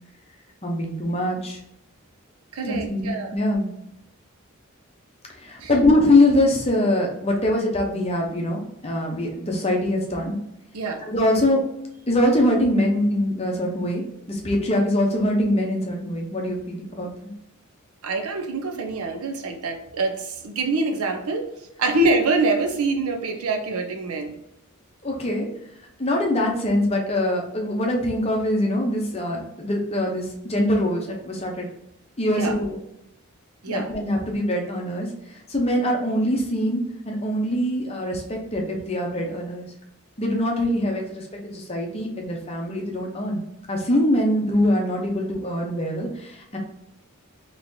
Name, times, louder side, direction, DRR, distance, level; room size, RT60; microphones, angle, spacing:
voice 1, 0.6-1.6 2.6-3.7 5.4-10.4 11.1-11.6 12.1-14.0 14.3-17.3 25.0-25.5 26.0-31.7 32.2-32.8 33.7-35.1 35.5-39.7 40.2-43.4 43.7-46.6, left 1 dB, 30° left, 0 dB, 0.8 m, -23 dB
voice 2, 2.5-3.3 5.6-5.7 10.7-11.0 18.0-21.5 21.8-24.4 32.3-32.6 33.6-33.9, right 3 dB, 90° right, 5 dB, 0.7 m, -25 dB
4.0 x 3.0 x 2.7 m, 0.82 s
head